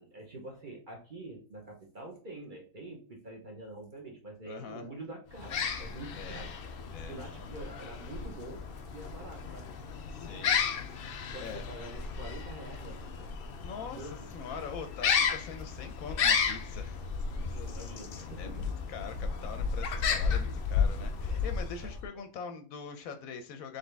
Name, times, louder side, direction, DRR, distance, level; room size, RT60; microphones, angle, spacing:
voice 1, 0.0-6.6 7.1-9.7 11.2-13.3 13.9-14.3 17.5-18.7 19.0-19.1 21.3-21.5 21.8-21.9, right 2 dB, 35° right, 0 dB, 1.0 m, -46 dB
voice 2, 4.4-4.9 6.2-6.4 6.9-7.6 10.1-10.6 11.4-11.6 13.6-17.1 18.4-18.6 18.9-23.8, left 6 dB, 70° left, 8 dB, 0.9 m, -43 dB
sound 1, 5.3-22.1, left 6 dB, 90° left, 0.5 m, -33 dB
4.1 x 3.4 x 3.3 m, 0.40 s
omnidirectional pair, 1.6 m